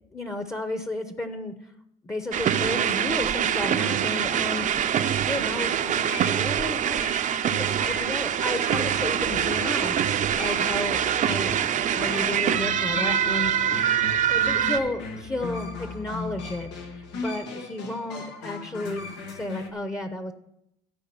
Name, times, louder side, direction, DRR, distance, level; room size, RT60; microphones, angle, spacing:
voice 1, 0.1-1.7 2.0-11.6 11.9-13.7 14.3-20.3, left 1 dB, 20° left, 7 dB, 0.9 m, -33 dB
sound 1, 2.3-14.8, right 9 dB, 50° right, 0.6 m, -24 dB
sound 2, 5.8-19.7, left 4 dB, 90° left, 1.4 m, -38 dB
Car / Engine starting, 8.6-17.3, left 3 dB, 55° left, 4.5 m, -43 dB
14.0 x 4.8 x 6.9 m, 0.79 s
cardioid pair, 110°, 17 cm